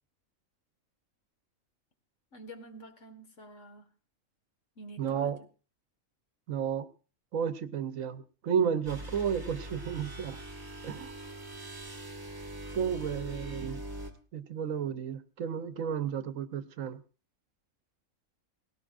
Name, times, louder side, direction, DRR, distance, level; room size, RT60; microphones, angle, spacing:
voice 1, 2.3-3.9 4.8-5.3, right 1 dB, 60° left, 5 dB, 2.0 m, -48 dB
voice 2, 5.0-5.4 6.5-6.9 7.3-10.4 10.8-11.1 12.7-13.8 14.3-17.0, right 7 dB, 75° right, 11 dB, 1.2 m, -32 dB
sound 1, 8.8-14.1, right 1 dB, 15° right, 1.7 m, -42 dB
19.0 x 17.5 x 2.5 m, 0.36 s
omnidirectional pair, 1.4 m